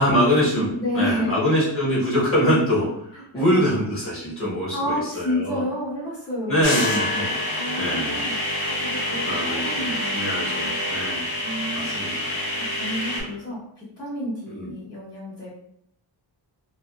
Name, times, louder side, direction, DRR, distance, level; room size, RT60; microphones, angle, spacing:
voice 1, 0.0-5.6 6.4-7.3 7.8-8.2 9.2-11.3 11.7-12.3 13.2-13.3 14.5-14.7, equal, 25° left, -8 dB, 1.1 m, -24 dB
voice 2, 0.8-1.3 3.3-3.7 4.7-6.8 7.5-11.0 11.4-11.9 12.6-15.5, left 1 dB, 10° left, -12 dB, 0.8 m, -30 dB
sound 1, 6.6-13.2, left 1 dB, 80° left, 1.0 m, -27 dB
2.7 x 2.2 x 2.2 m, 0.74 s
wide cardioid pair, 145°, 48 cm